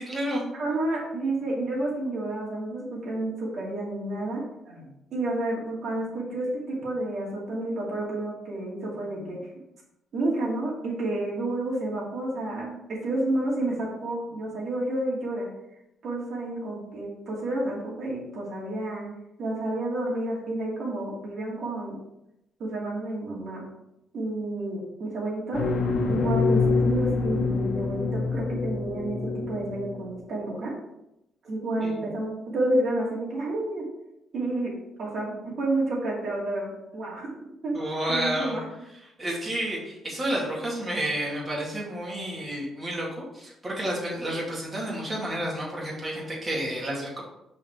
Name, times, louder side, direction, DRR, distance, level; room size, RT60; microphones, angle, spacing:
voice 1, 0.0-0.4 31.7-32.0 37.7-38.6 39.2-47.2, right 1 dB, 25° right, -4 dB, 2.6 m, -30 dB
voice 2, 0.5-9.5 10.1-15.5 16.0-19.1 19.4-21.9 22.6-23.6 24.1-25.6 26.1-30.7 31.5-33.8 34.3-34.7 35.0-37.3 37.6-37.8 38.1-38.6, right 1 dB, 60° right, -5 dB, 2.6 m, -30 dB
sound 1, 25.5-30.1, left 3 dB, 65° left, 1.1 m, -26 dB
5.5 x 4.3 x 4.8 m, 0.85 s
cardioid pair, 90°, 0 cm